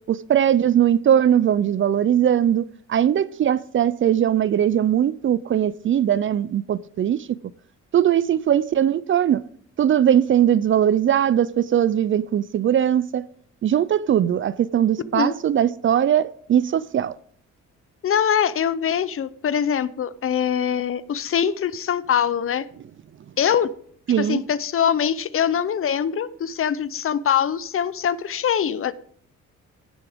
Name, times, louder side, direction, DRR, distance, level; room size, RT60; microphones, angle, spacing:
voice 1, 0.1-7.3 7.9-9.4 9.8-13.2 13.6-17.1 24.1-24.4, right 10 dB, 40° right, 0.4 m, -20 dB
voice 2, 18.0-22.7 23.4-23.7 24.2-28.9, left 8 dB, 45° left, 0.7 m, -23 dB
16.0 x 7.0 x 3.6 m
cardioid pair, 90°, 30 cm